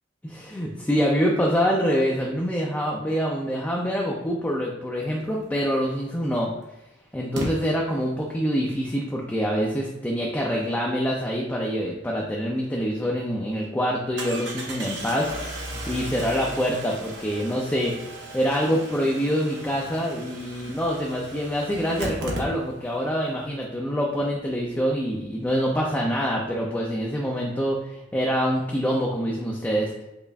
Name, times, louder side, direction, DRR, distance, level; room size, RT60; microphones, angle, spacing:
voice 1, 0.2-6.5 7.1-18.0 18.3-27.8 28.1-30.0, equal, 10° left, -2 dB, 0.3 m, -25 dB
Engine starting, 5.8-5.9 7.3-7.5 12.6-12.7 13.0-13.1 14.2-23.0 23.3-23.4 23.6-23.7, right 1 dB, 70° right, 0.8 m, -36 dB
5.2 x 2.4 x 2.2 m, 0.98 s
head